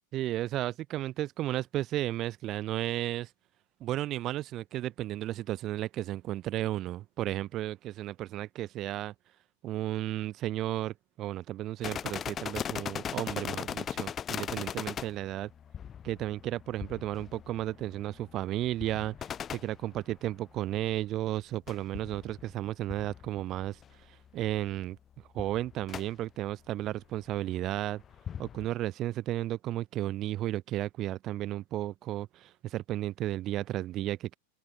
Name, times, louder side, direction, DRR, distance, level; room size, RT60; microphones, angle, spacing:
voice 1, 0.1-3.3 3.8-9.1 9.6-15.5 16.0-25.0 25.3-28.0 28.4-34.4, right 14 dB, 35° right, 0.6 m, -33 dB
sound 1, 11.8-20.7 21.7-24.0 24.3-24.4 24.7-25.0 25.4-26.1 27.2-27.4 28.0-28.7, left 8 dB, 25° left, 0.9 m, -39 dB
open air
figure-of-eight pair, 90°, 0 cm